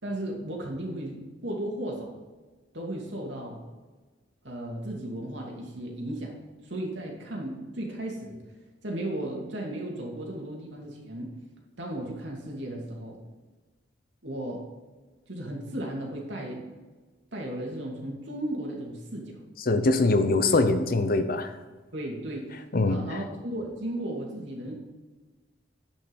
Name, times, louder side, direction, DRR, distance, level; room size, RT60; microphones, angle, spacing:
voice 1, 0.0-1.2 1.4-2.1 2.7-3.6 4.4-6.3 6.6-8.4 8.8-11.3 11.8-13.2 14.2-14.6 15.3-16.6 17.3-19.3 21.9-22.5 22.8-24.7, right 1 dB, 75° right, -1 dB, 2.5 m, -35 dB
voice 2, 19.6-21.6 22.7-23.2, left 2 dB, 50° left, 8 dB, 0.9 m, -23 dB
10.5 x 5.5 x 5.4 m, 1.3 s
head